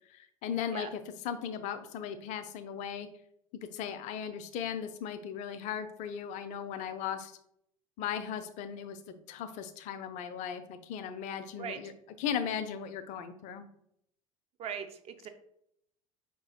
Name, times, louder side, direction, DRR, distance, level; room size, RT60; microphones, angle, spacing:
voice 1, 0.1-3.1 3.7-7.3 8.0-11.9 12.2-13.7, left 8 dB, 40° left, 11 dB, 0.5 m, -37 dB
voice 2, 14.6-15.3, right 8 dB, 35° right, 8 dB, 0.5 m, -39 dB
5.2 x 2.9 x 2.8 m, 0.73 s
figure-of-eight pair, 70°, 18 cm